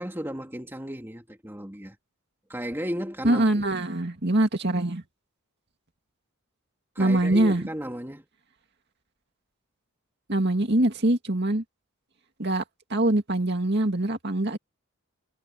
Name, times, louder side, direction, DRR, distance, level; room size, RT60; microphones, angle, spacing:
voice 1, 0.0-2.0 2.5-3.5 6.9-8.3, equal, 10° right, 2.6 m, -34 dB
voice 2, 3.2-5.0 7.0-7.6 10.3-11.6 12.4-12.6 12.9-14.6, right 1 dB, 50° right, 2.3 m, -23 dB
head